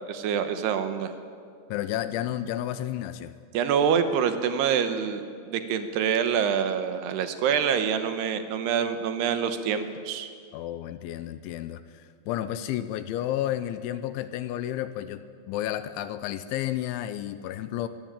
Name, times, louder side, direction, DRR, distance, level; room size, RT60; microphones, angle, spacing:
voice 1, 0.1-1.1 3.5-10.3, right 7 dB, 70° right, 9 dB, 2.8 m, -26 dB
voice 2, 1.7-3.3 10.5-17.9, left 12 dB, 80° left, 12 dB, 3.0 m, -31 dB
22.5 x 17.0 x 8.9 m, 2.2 s
omnidirectional pair, 5.7 m